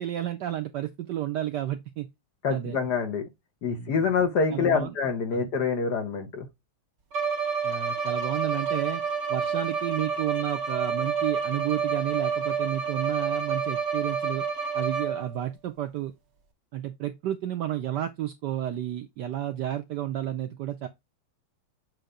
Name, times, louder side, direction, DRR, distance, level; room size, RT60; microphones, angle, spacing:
voice 1, 0.0-2.1 2.5-2.8 3.7-4.1 4.5-5.0 5.3-5.5 7.6-9.0 9.3-14.4 14.7-16.1 16.7-20.9, right 12 dB, 75° right, 1.0 m, -31 dB
voice 2, 2.4-3.2 3.6-6.5, left 5 dB, 55° left, 1.4 m, -26 dB
Bowed string instrument, 7.1-15.4, right 5 dB, 55° right, 1.9 m, -29 dB
7.8 x 2.7 x 4.9 m
omnidirectional pair, 2.4 m